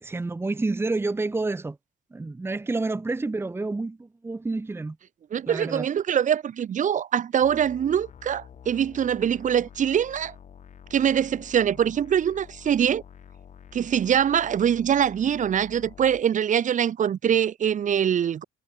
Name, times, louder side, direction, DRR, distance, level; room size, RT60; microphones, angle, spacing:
voice 1, 0.0-1.8 2.1-5.0 5.5-5.9, right 3 dB, 15° right, 1.3 m, -29 dB
voice 2, 5.3-10.3 10.9-13.0 13.7-18.4, right 9 dB, 50° right, 3.2 m, -23 dB
sound 1, 7.4-16.2, left 8 dB, 45° left, 7.3 m, -48 dB
cardioid pair, 110°, 17 cm